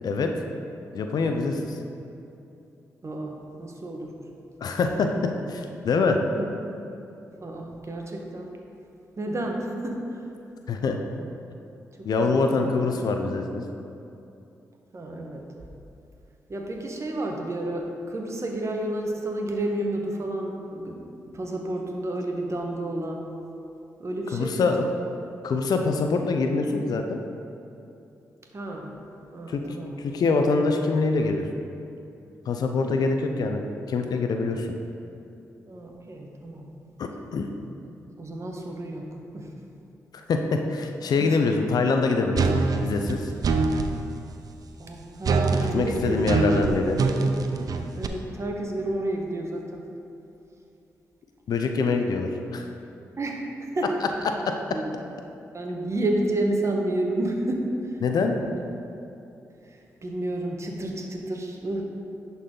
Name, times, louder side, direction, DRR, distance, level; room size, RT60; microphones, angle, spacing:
voice 1, 0.0-0.3 0.9-1.6 4.6-6.2 10.7-11.0 12.0-13.6 24.3-24.8 25.4-27.2 29.5-31.5 32.5-33.6 33.9-34.7 37.0-37.5 40.1-43.3 45.7-47.0 51.5-52.7 58.0-58.4, left 4 dB, 70° left, 4 dB, 0.6 m, -24 dB
voice 2, 3.0-4.1 6.3-6.5 7.4-8.5 9.2-10.2 11.2-11.3 12.0-12.7 13.0-13.1 14.9-15.5 16.5-23.3 24.0-24.7 28.5-28.9 29.3-30.0 32.6-33.0 35.6-36.7 37.9-39.1 39.3-39.5 41.2-41.4 44.8-46.9 48.0-49.9 53.2-53.9 54.7-55.0 55.5-58.0 58.5-58.6 59.7-61.8, right 1 dB, 45° right, 1 dB, 1.2 m, -31 dB
sound 1, 42.4-43.9 45.2-48.1, right 4 dB, 60° right, 0.5 m, -24 dB
11.0 x 4.2 x 3.8 m, 2.8 s
supercardioid pair, 45°, 7 cm